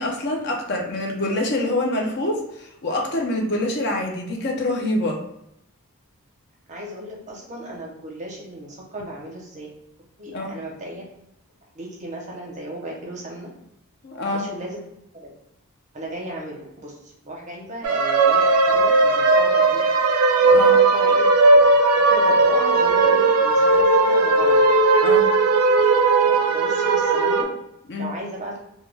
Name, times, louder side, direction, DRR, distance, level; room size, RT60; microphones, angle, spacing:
voice 1, 0.0-5.2 10.3-10.5 14.0-14.5 20.4-20.8 25.0-25.3 27.9-28.1, left 1 dB, 50° left, 1 dB, 0.5 m, -25 dB
voice 2, 6.7-9.7 10.2-11.0 11.7-13.5 14.3-14.8 15.1-15.3 15.9-20.0 20.6-21.3 21.5-24.6 26.1-27.5 28.0-28.6, right 1 dB, 30° right, -2 dB, 0.6 m, -36 dB
sound 1, 17.8-27.4, right 3 dB, 80° right, 0.4 m, -17 dB
2.2 x 2.2 x 3.1 m, 0.80 s
head